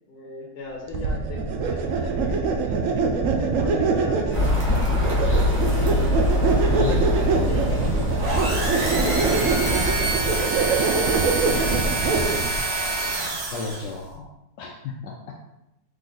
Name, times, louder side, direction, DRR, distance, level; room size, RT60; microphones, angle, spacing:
voice 1, 0.1-2.8 3.3-4.6 5.1-6.1 6.6-10.4, left 3 dB, 60° left, -2 dB, 1.3 m, -37 dB
sound 1, 0.9-12.6, right 4 dB, 70° right, 0.7 m, -23 dB
sound 2, 4.3-10.0, left 3 dB, 10° left, 0.7 m, -24 dB
voice 2, 6.7-7.1 11.5-11.9 13.5-14.3 14.6-15.4, left 5 dB, 75° left, 0 dB, 1.2 m, -33 dB
sound 3, 8.2-14.0, right 2 dB, 90° right, 1.6 m, -27 dB
3.9 x 3.5 x 3.9 m, 0.88 s
omnidirectional pair, 1.9 m